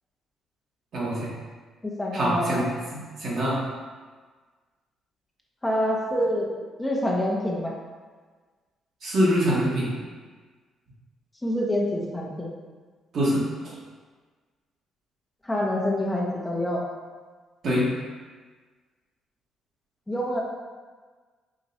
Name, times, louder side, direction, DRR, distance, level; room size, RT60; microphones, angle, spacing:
voice 1, 0.9-1.3 2.1-2.7 3.2-3.6 9.0-9.9 13.1-13.7 17.6-17.9, equal, 60° right, -6 dB, 1.4 m, -24 dB
voice 2, 1.8-2.6 5.6-6.5 6.8-7.7 11.4-12.5 15.4-16.9 20.1-20.4, left 1 dB, 15° left, -2 dB, 0.9 m, -26 dB
4.8 x 2.9 x 2.7 m, 1.4 s
hypercardioid pair, 55°, 0 cm